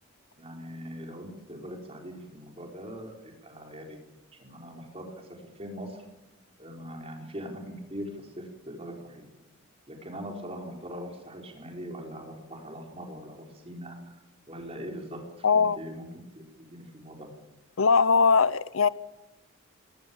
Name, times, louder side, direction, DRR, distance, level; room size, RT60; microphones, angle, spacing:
voice 1, 0.4-4.0 4.4-5.1 5.5-6.0 6.6-8.1 8.4-9.2 9.9-16.0 16.3-17.3, equal, 30° right, 4.4 m, -41 dB
voice 2, 15.4-15.8 17.8-18.9, left 5 dB, 75° left, 0.7 m, -21 dB
20.5 x 18.5 x 7.2 m
head